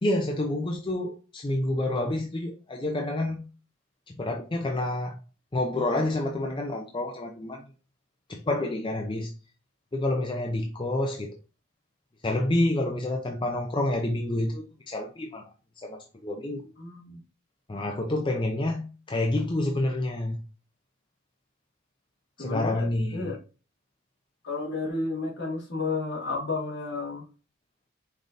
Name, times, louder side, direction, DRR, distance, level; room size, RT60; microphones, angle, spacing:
voice 1, 0.0-3.5 4.1-5.2 5.5-7.7 8.3-9.3 9.9-11.4 12.2-15.5 15.8-16.7 17.7-20.4 22.4-23.3, left 1 dB, 25° left, 2 dB, 0.5 m, -28 dB
voice 2, 16.8-17.2 22.4-23.4 24.4-27.2, left 3 dB, 55° left, -2 dB, 1.8 m, -32 dB
5.3 x 3.8 x 2.6 m, 0.35 s
head